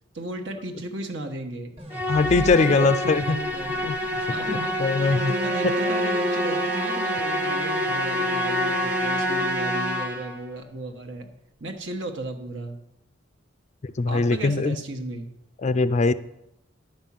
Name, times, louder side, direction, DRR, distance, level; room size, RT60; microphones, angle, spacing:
voice 1, 0.1-1.8 2.4-11.3 11.6-12.8 14.1-15.3, right 1 dB, 70° right, 3 dB, 1.3 m, -35 dB
sound 1, 1.8-5.0, equal, 30° right, 1.4 m, -40 dB
Musical instrument, 1.9-10.4, left 1 dB, 10° right, 1.0 m, -27 dB
voice 2, 2.1-3.4 3.8-4.0 4.5-5.3 5.6-5.8 13.8-14.8 15.6-16.1, left 3 dB, 35° left, 14 dB, 0.4 m, -21 dB
Bowed string instrument, 5.1-9.8, right 1 dB, 50° right, 0.7 m, -31 dB
10.5 x 5.5 x 7.4 m, 0.83 s
head